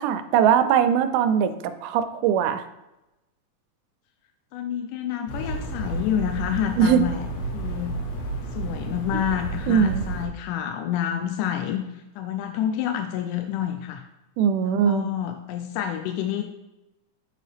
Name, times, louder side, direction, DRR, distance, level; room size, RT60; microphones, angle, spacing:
voice 1, 0.0-1.5 1.8-2.6 6.8-7.0 9.7-10.0 14.4-15.1, right 8 dB, 85° right, 10 dB, 2.0 m, -20 dB
voice 2, 4.5-8.0 8.5-14.1 14.6-16.4, left 10 dB, 90° left, 6 dB, 2.1 m, -28 dB
sound 1, 5.3-10.3, right 2 dB, 70° left, 1.9 m, -31 dB
8.4 x 4.6 x 3.4 m, 0.97 s
omnidirectional pair, 3.6 m